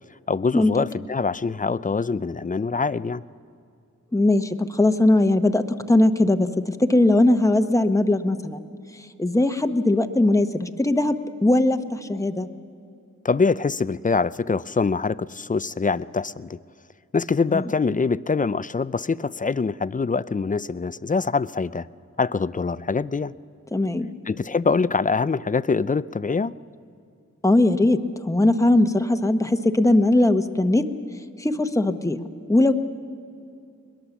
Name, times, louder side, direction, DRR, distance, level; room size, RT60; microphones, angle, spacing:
voice 1, 0.3-3.2 13.2-16.6 17.1-21.9 22.2-23.3 24.3-26.5, left 4 dB, 25° left, 17 dB, 0.4 m, -24 dB
voice 2, 4.1-5.6 5.9-8.7 9.2-12.5 17.5-17.6 23.7-24.1 27.4-30.8 31.4-32.2 32.5-32.7, left 2 dB, 10° left, 7 dB, 1.0 m, -20 dB
22.0 x 21.0 x 7.2 m, 2.4 s
wide cardioid pair, 55°, 30 cm